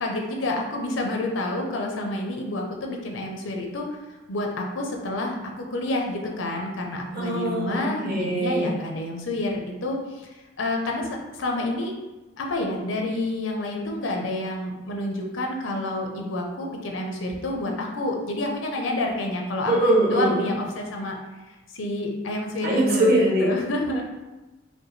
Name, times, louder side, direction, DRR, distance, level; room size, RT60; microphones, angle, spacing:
voice 1, 0.0-3.9 4.3-11.9 12.4-19.7 20.1-21.2 21.7-24.0, left 1 dB, 75° left, 1 dB, 0.6 m, -29 dB
voice 2, 7.1-8.8 19.7-20.4 22.6-23.5, right 1 dB, 50° right, -3 dB, 1.1 m, -22 dB
5.0 x 2.3 x 3.1 m, 1.1 s
head